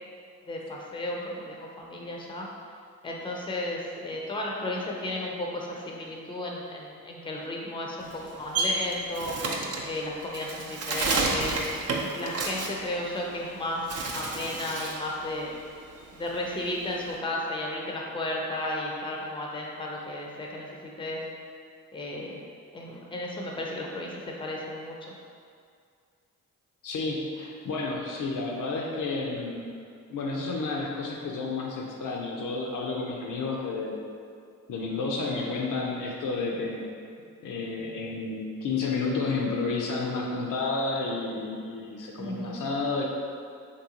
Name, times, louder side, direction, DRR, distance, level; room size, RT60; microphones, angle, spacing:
voice 1, 0.5-2.5 3.0-9.4 9.8-11.6 12.1-15.5 16.1-21.2 21.9-22.4 22.7-25.1 42.2-42.6, left 1 dB, 15° left, -2 dB, 0.5 m, -34 dB
Bird, 8.0-13.5 13.8-15.1 15.4-17.2, right 3 dB, 45° right, 0.5 m, -31 dB
voice 2, 26.8-29.7 30.1-34.0 34.7-36.9 37.4-43.0, left 3 dB, 60° left, -1 dB, 0.5 m, -31 dB
3.3 x 2.6 x 2.9 m, 2.3 s
supercardioid pair, 50°, 35 cm